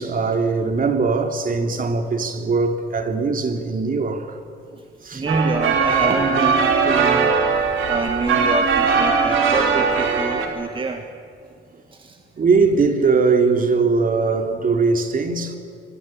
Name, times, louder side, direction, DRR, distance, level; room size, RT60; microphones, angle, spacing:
voice 1, 0.0-4.4 5.0-5.2 12.4-15.6, right 4 dB, 45° right, 3.1 m, -20 dB
voice 2, 5.1-7.4 7.8-11.1 11.9-12.2, right 3 dB, 25° right, 1.8 m, -26 dB
sound 1, 5.3-10.5, right 5 dB, 85° right, 4.2 m, -19 dB
26.5 x 22.0 x 8.8 m
cardioid pair, 90°, 20 cm